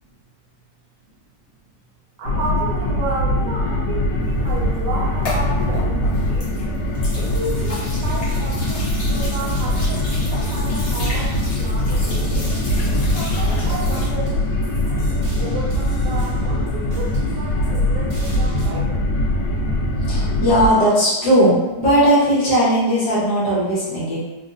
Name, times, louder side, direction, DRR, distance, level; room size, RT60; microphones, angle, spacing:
sound 1, 2.2-20.7, left 1 dB, 80° left, 1.4 m, -22 dB
voice 1, 2.2-6.7 7.1-12.5 13.1-19.0, right 2 dB, 70° right, -4 dB, 1.3 m, -32 dB
sound 2, 4.5-14.0, left 2 dB, 45° left, 0.9 m, -33 dB
sound 3, 7.1-18.7, left 1 dB, 45° right, 2.0 m, -36 dB
voice 2, 15.0-15.7 16.5-16.7 18.0-18.1 19.8-24.2, equal, 65° left, -8 dB, 1.7 m, -18 dB
4.1 x 2.6 x 2.6 m, 1.2 s
omnidirectional pair, 1.9 m